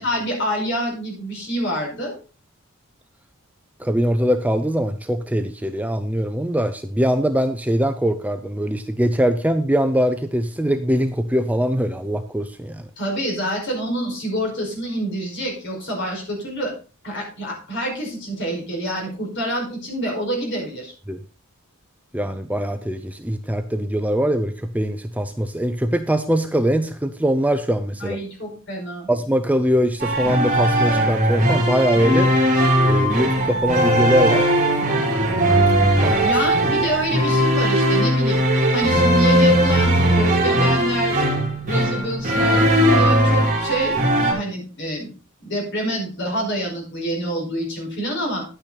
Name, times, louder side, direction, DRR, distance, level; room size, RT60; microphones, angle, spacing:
voice 1, 0.0-2.1 13.0-16.7 17.0-20.9 28.0-29.1 36.2-38.4 38.7-41.2 41.7-44.0 44.3-45.1 45.4-48.4, right 1 dB, 55° left, 0 dB, 5.0 m, -27 dB
voice 2, 3.8-12.9 21.1-21.2 22.1-28.2 29.1-32.3 32.8-34.4 36.0-36.3 36.9-37.0, equal, 5° right, 9 dB, 0.5 m, -22 dB
sound 1, 30.0-44.3, right 1 dB, 35° right, 2.9 m, -18 dB
10.5 x 9.0 x 4.0 m, 0.35 s
head